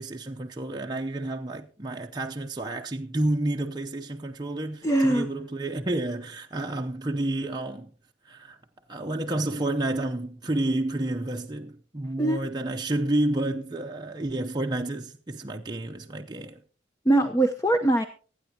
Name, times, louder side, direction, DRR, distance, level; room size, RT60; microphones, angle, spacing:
voice 1, 0.0-7.9 8.2-8.6 8.9-16.6, right 1 dB, 25° right, 0.7 m, -30 dB
voice 2, 4.8-5.3 12.2-12.4 17.1-18.1, right 1 dB, 15° left, 0.8 m, -22 dB
25.0 x 9.3 x 2.8 m
head